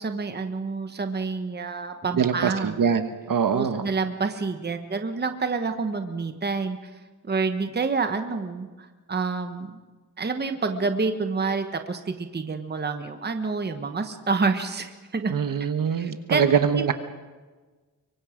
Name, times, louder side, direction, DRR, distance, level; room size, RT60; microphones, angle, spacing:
voice 1, 0.0-2.8 3.5-6.9 7.2-9.8 10.2-15.3 15.9-16.4 16.8-16.9, right 4 dB, 25° right, 7 dB, 1.2 m, -28 dB
voice 2, 2.2-3.8 15.3-16.9, right 7 dB, 60° right, 9 dB, 1.3 m, -23 dB
25.0 x 23.5 x 5.2 m, 1.3 s
wide cardioid pair, 175°, 38 cm